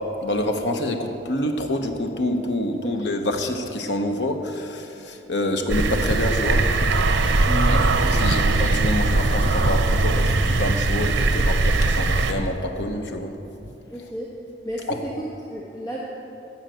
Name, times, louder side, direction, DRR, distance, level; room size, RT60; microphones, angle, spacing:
voice 1, 0.2-6.7 7.7-13.3 14.9-15.0, left 1 dB, 70° left, 5 dB, 1.0 m, -27 dB
voice 2, 2.8-3.1 7.4-7.8 13.9-14.3 14.6-16.0, equal, 20° left, -5 dB, 1.2 m, -32 dB
sound 1, 5.7-12.3, right 2 dB, 85° right, 0.7 m, -20 dB
14.0 x 5.7 x 7.7 m, 2.8 s
head